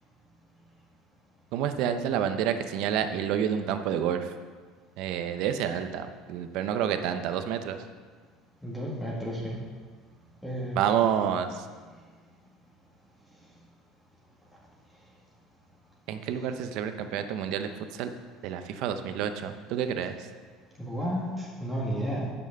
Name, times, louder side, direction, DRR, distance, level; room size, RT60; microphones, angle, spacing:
voice 1, 1.5-4.3 5.0-7.8 10.7-11.6 16.1-18.1 18.4-20.2, right 9 dB, 65° right, 8 dB, 0.8 m, -29 dB
voice 2, 8.6-9.6 10.4-10.8 20.8-22.3, equal, 5° left, -4 dB, 1.9 m, -32 dB
9.2 x 6.2 x 6.7 m, 1.5 s
cardioid pair, 135°, 0 cm